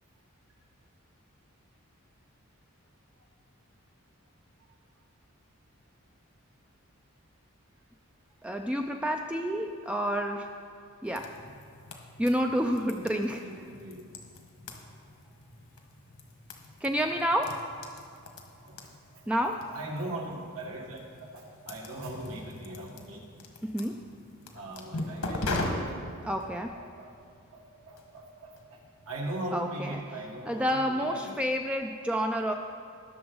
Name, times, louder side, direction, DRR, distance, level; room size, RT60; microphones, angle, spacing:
voice 1, 8.4-10.5 11.0-11.3 12.2-13.7 16.8-17.7 19.3-19.6 23.6-24.0 26.2-26.8 29.5-30.0 30.5-32.5, equal, 5° right, 3 dB, 0.3 m, -29 dB
sound 1, 11.0-29.4, left 2 dB, 80° left, 1.4 m, -41 dB
voice 2, 12.8-14.1 14.7-15.0 18.6-23.4 24.5-31.4, right 1 dB, 70° right, -1 dB, 1.9 m, -41 dB
19.5 x 6.8 x 3.9 m, 2.3 s
head